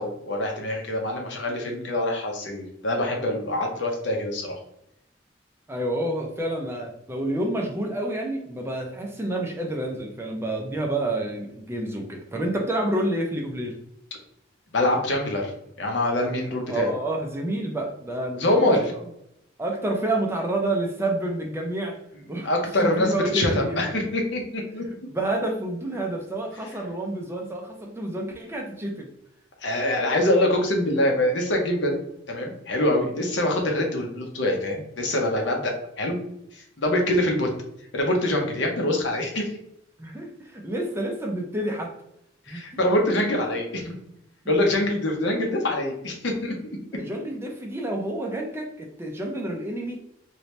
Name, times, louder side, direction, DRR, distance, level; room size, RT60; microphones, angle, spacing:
voice 1, 0.0-4.6 14.7-15.5 15.8-16.9 18.4-18.8 22.4-25.1 29.6-32.0 32.3-36.2 36.5-37.5 37.9-39.5 42.5-43.9 44.5-46.8, left 1 dB, 70° left, 1 dB, 0.8 m, -24 dB
voice 2, 5.7-13.8 16.7-18.8 19.6-22.0 22.3-22.5 22.8-23.9 25.1-29.1 40.0-41.9 42.5-42.6 43.2-43.3 46.9-50.0, right 1 dB, 15° right, 1 dB, 0.5 m, -29 dB
3.0 x 2.7 x 3.2 m, 0.78 s
head